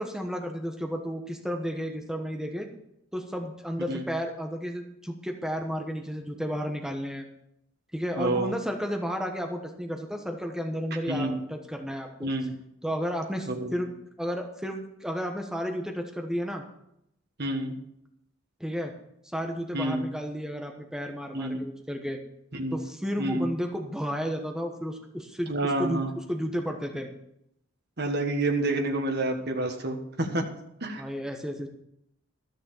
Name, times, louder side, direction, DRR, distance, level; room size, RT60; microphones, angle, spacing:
voice 1, 0.0-2.7 3.1-7.3 7.9-12.3 12.8-13.9 14.2-16.6 18.6-18.9 19.3-22.2 22.7-27.1 31.0-31.7, equal, 5° right, 3 dB, 1.1 m, -32 dB
voice 2, 8.1-8.5 11.1-11.4 12.2-12.5 13.5-13.7 17.4-17.8 19.7-20.0 21.3-21.6 22.6-22.8 23.2-23.5 25.5-26.1 28.0-30.4 30.8-31.0, right 2 dB, 55° right, 2 dB, 1.6 m, -28 dB
13.5 x 6.4 x 7.1 m, 0.78 s
head